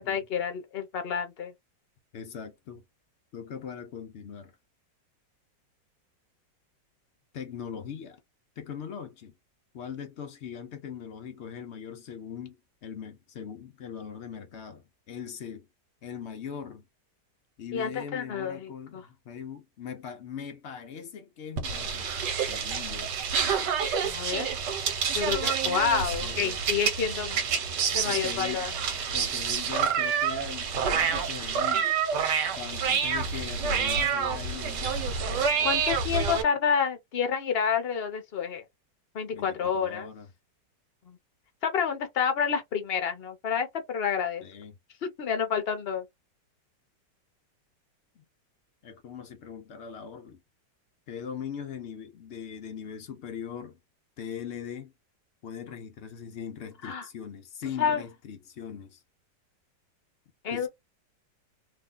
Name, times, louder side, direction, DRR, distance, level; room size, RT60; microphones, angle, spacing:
voice 1, 0.0-1.5 17.7-19.0 24.0-24.5 25.1-27.4 27.9-28.7 35.4-38.6 39.1-40.1 41.1-41.2 41.6-44.4 45.2-46.0 56.8-57.0 57.8-58.0 60.4-60.7, left 7 dB, 50° left, 0.7 m, -29 dB
voice 2, 2.1-2.8 3.3-4.6 7.3-8.2 8.6-9.3 9.7-15.7 16.0-16.8 17.6-23.1 26.2-26.6 28.0-28.7 29.1-31.9 32.5-35.0 36.1-36.2 39.3-40.3 44.4-44.8 48.2-48.3 48.8-50.4 51.1-53.8 54.2-54.9 55.4-59.0 60.5-60.7, left 7 dB, 85° left, 0.6 m, -40 dB
sound 1, 21.6-36.4, right 6 dB, 70° right, 1.4 m, -28 dB
3.0 x 2.3 x 3.8 m
omnidirectional pair, 1.9 m